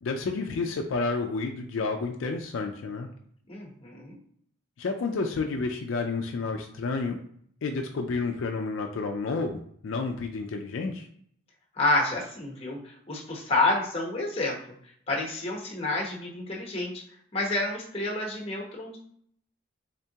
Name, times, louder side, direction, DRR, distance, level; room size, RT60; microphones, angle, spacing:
voice 1, 0.0-3.1 4.8-7.2 7.6-11.1, left 4 dB, 70° left, 3 dB, 0.4 m, -30 dB
voice 2, 3.5-4.2 11.7-14.6 15.1-16.9 17.3-19.0, left 2 dB, 30° left, -1 dB, 0.9 m, -29 dB
3.6 x 3.4 x 2.8 m, 0.64 s
head